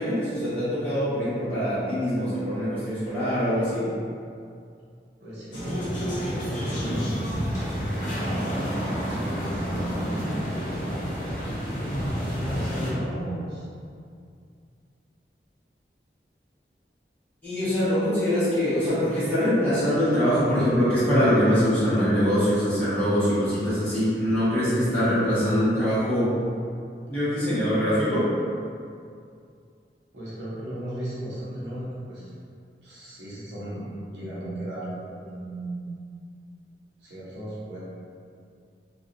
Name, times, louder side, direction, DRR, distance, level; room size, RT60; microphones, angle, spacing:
voice 1, 0.0-3.9 17.4-26.3 27.1-28.3, equal, 10° left, -15 dB, 1.1 m, -23 dB
voice 2, 5.2-7.1 7.9-11.0 12.0-13.7 30.1-32.3 32.8-35.9 37.0-37.8, right 1 dB, 80° right, -9 dB, 0.8 m, -36 dB
sound 1, 5.5-12.9, equal, 45° left, 0.6 m, -29 dB
2.7 x 2.3 x 2.5 m, 2.3 s
head